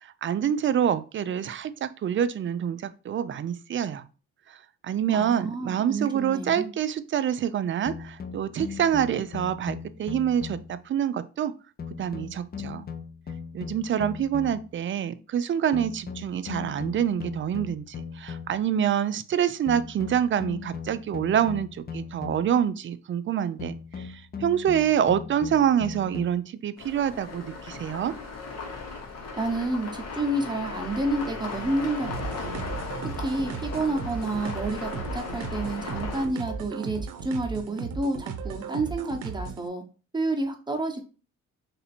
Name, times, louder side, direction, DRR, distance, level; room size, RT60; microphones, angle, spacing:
voice 1, 0.0-4.0 4.5-4.6 4.8-11.5 12.0-12.9 13.5-24.1 24.4-28.1, right 9 dB, 40° right, 0.4 m, -26 dB
voice 2, 5.1-6.7 29.4-32.6 33.2-39.8 40.1-41.0, right 2 dB, 15° right, 0.9 m, -30 dB
sound 1, 7.9-10.9 11.8-14.8 15.7-18.7 19.7-22.7 23.6-26.3, left 6 dB, 30° left, 0.5 m, -39 dB
sound 2, 26.8-36.3, left 4 dB, 60° left, 1.1 m, -37 dB
sound 3, 32.1-39.7, right 6 dB, 85° right, 0.6 m, -36 dB
3.4 x 2.7 x 4.2 m
cardioid pair, 90°, 30 cm